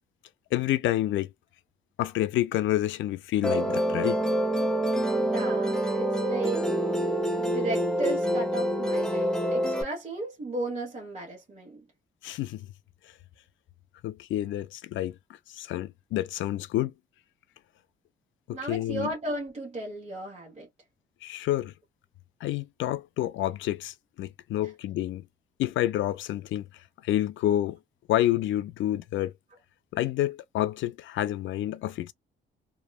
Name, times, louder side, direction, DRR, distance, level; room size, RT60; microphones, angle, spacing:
voice 1, 0.5-1.3 2.0-4.2 12.2-12.7 14.0-15.2 15.5-16.9 18.5-19.1 21.2-21.7 22.4-25.2 25.6-26.7 27.0-27.8 28.1-29.3 29.9-32.1, left 14 dB, 85° left, 0.4 m, -28 dB
Musical instrument, 3.4-9.8, right 1 dB, 5° left, 0.7 m, -26 dB
voice 2, 5.3-6.7 7.4-11.9 18.5-20.7, right 2 dB, 35° right, 1.1 m, -35 dB
2.9 x 2.2 x 2.3 m
cardioid pair, 100°, 19 cm